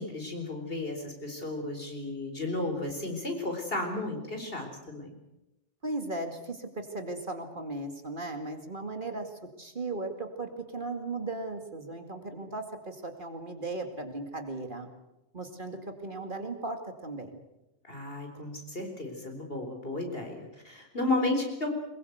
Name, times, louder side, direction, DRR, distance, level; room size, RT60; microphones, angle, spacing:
voice 1, 0.0-5.1 17.8-21.7, left 2 dB, 55° left, 3 dB, 4.5 m, -33 dB
voice 2, 5.8-14.9 15.3-17.4, right 2 dB, 45° right, 6 dB, 2.4 m, -37 dB
22.5 x 21.5 x 8.1 m, 0.95 s
omnidirectional pair, 1.2 m